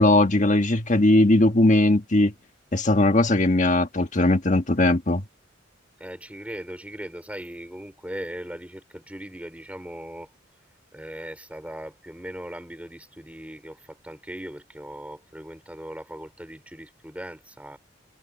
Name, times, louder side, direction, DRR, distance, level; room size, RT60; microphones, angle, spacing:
voice 1, 0.0-2.3 2.7-5.2, left 2 dB, 40° left, 1.5 m, -19 dB
voice 2, 6.0-10.3 10.9-17.8, equal, 5° right, 5.1 m, -39 dB
head